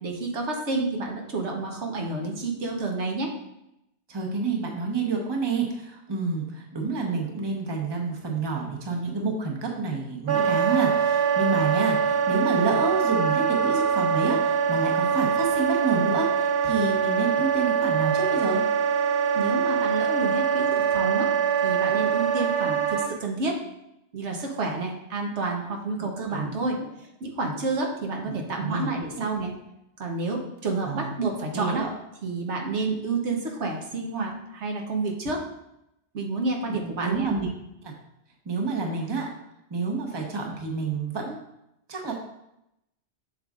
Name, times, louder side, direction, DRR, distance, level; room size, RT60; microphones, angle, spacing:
voice 1, 0.0-3.3 19.3-21.3 21.6-23.6 24.1-26.8 27.2-29.5 30.0-31.9 32.2-35.4 36.1-37.3, right 3 dB, 75° right, 1 dB, 1.3 m, -29 dB
voice 2, 4.1-18.6 26.0-26.5 28.3-28.9 29.1-29.2 30.8-31.1 31.5-31.9 37.0-37.5 37.8-37.9 38.4-39.3 39.7-41.4 41.9-42.1, right 4 dB, 25° right, 0 dB, 1.0 m, -28 dB
Wind instrument woodwind instrument, 10.3-23.1, right 7 dB, 55° right, 0.7 m, -24 dB
7.1 x 6.8 x 2.5 m, 0.84 s
omnidirectional pair, 1.2 m